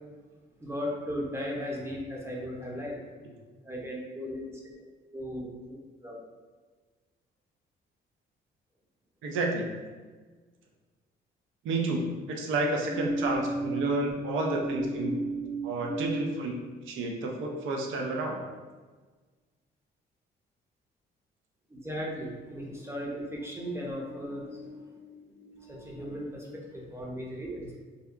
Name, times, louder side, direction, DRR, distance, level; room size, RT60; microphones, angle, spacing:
voice 1, 0.6-3.0 3.6-4.5 5.1-6.2 12.8-14.1 14.4-16.3 21.7-27.8, right 1 dB, 15° right, -3 dB, 0.6 m, -35 dB
voice 2, 9.2-9.6 11.6-12.0 12.3-15.1 15.6-16.5 16.9-18.4, right 2 dB, 80° right, 1 dB, 0.5 m, -30 dB
2.7 x 2.2 x 2.3 m, 1.4 s
cardioid pair, 90°, 20 cm